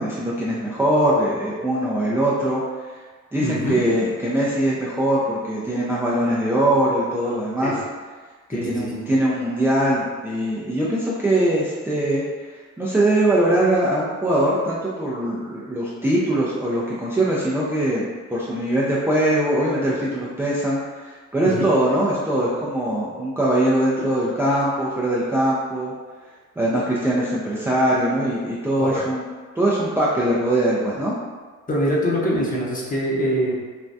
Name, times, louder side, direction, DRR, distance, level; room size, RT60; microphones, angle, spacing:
voice 1, 0.0-2.6 3.3-7.7 8.6-12.5 12.8-25.9 26.6-29.2 29.6-31.1, right 1 dB, 10° right, -7 dB, 0.4 m, -22 dB
voice 2, 3.4-3.8 7.6-7.8 8.5-9.1 21.4-21.7 28.8-29.0 31.7-33.5, equal, 30° left, -4 dB, 0.8 m, -24 dB
3.4 x 2.2 x 2.6 m, 1.4 s
cardioid pair, 90°, 30 cm